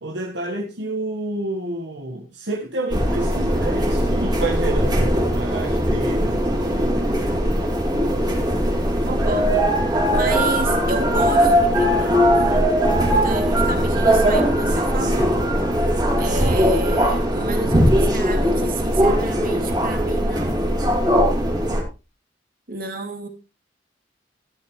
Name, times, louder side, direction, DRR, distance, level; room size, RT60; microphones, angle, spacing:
voice 1, 0.0-6.9, right 2 dB, 70° right, 1.5 m, -29 dB
sound 1, 2.9-21.8, equal, 20° right, 2.7 m, -19 dB
voice 2, 9.0-15.4 16.2-20.9 22.7-23.3, right 2 dB, 50° right, 2.7 m, -31 dB
13.5 x 11.0 x 3.2 m
head